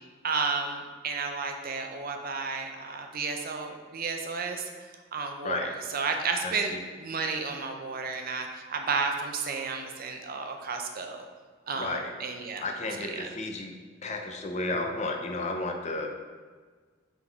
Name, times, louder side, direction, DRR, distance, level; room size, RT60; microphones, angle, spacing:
voice 1, 0.2-0.8 1.0-4.6 5.1-11.2 11.7-12.6 13.2-13.3, right 4 dB, 45° right, 4 dB, 0.6 m, -32 dB
voice 2, 6.4-6.8 11.7-12.1 12.6-13.7 14.0-16.1, left 2 dB, 35° left, 3 dB, 0.6 m, -32 dB
6.0 x 3.8 x 4.5 m, 1.5 s
head